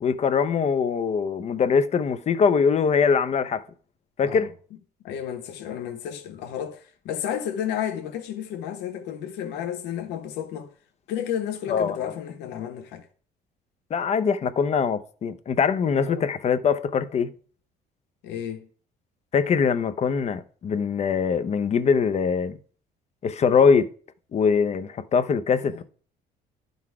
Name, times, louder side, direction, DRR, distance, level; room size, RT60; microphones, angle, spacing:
voice 1, 0.0-3.6 4.2-4.5 11.7-12.0 13.9-17.3 19.3-22.6 23.2-23.9 24.3-25.8, left 6 dB, 40° left, 0.6 m, -22 dB
voice 2, 5.0-10.7 11.1-13.1 16.0-16.3 18.2-18.7 25.5-25.8, left 9 dB, 90° left, 1.2 m, -32 dB
11.0 x 4.0 x 4.7 m
cardioid pair, 110°, 17 cm